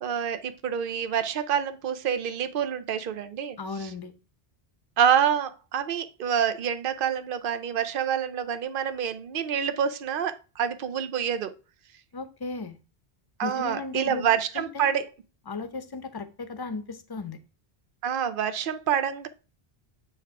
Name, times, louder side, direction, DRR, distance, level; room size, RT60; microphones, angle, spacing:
voice 1, 0.0-3.9 5.0-11.5 13.4-15.1 18.0-19.3, right 8 dB, 60° right, 0.8 m, -27 dB
voice 2, 3.6-4.1 12.1-12.8 13.4-14.3 14.5-15.0 15.5-17.4, left 3 dB, 25° left, 0.7 m, -35 dB
8.7 x 3.4 x 4.7 m
omnidirectional pair, 1.1 m